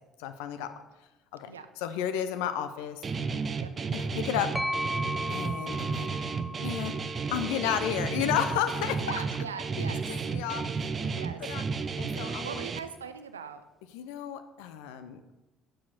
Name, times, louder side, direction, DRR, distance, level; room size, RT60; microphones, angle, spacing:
voice 1, 0.2-0.7 1.3-1.5 1.8-3.0 3.9-4.6 5.3-6.1 6.6-7.0 7.3-9.1 9.8-10.6 11.0-11.1 11.4-11.6 12.0-12.6 13.9-15.2, left 10 dB, 70° left, 10 dB, 0.6 m, -32 dB
Guitar, 3.0-12.8, right 5 dB, 35° right, 0.6 m, -33 dB
sound 1, 4.5-8.3, equal, 5° left, 0.7 m, -36 dB
voice 2, 8.8-10.1 10.4-10.5 11.1-11.4 12.4-13.6, right 6 dB, 85° right, 10 dB, 0.5 m, -40 dB
7.1 x 5.0 x 5.9 m, 1.0 s
figure-of-eight pair, 55°, 0 cm